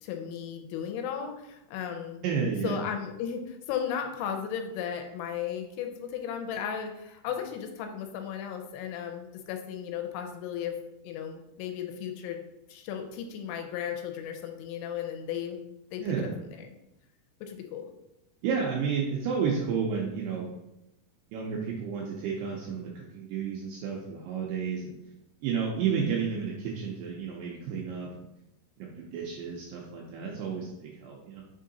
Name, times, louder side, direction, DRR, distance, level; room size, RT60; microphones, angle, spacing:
voice 1, 0.0-2.2 2.6-10.8 11.0-12.4 12.7-15.6 15.9-16.7 17.4-17.9, left 8 dB, 85° left, 4 dB, 2.9 m, -35 dB
voice 2, 2.2-2.8 16.0-16.4 18.4-20.5 21.3-25.0 25.4-28.2 28.8-31.4, right 6 dB, 85° right, -2 dB, 2.4 m, -31 dB
6.6 x 3.7 x 4.0 m, 0.91 s
omnidirectional pair, 5.6 m